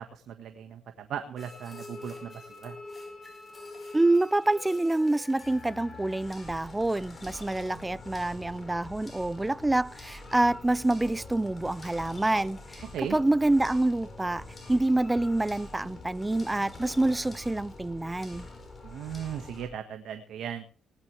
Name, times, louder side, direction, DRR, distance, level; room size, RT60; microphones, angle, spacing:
voice 1, 0.0-2.8 12.9-13.2 18.8-20.6, right 8 dB, 70° right, 1.5 m, -37 dB
sound 1, 1.4-19.7, left 2 dB, 30° left, 5.0 m, -45 dB
voice 2, 3.9-12.8 13.1-18.5, right 2 dB, 15° right, 0.5 m, -27 dB
19.5 x 11.5 x 3.3 m
cardioid pair, 90°, 0 cm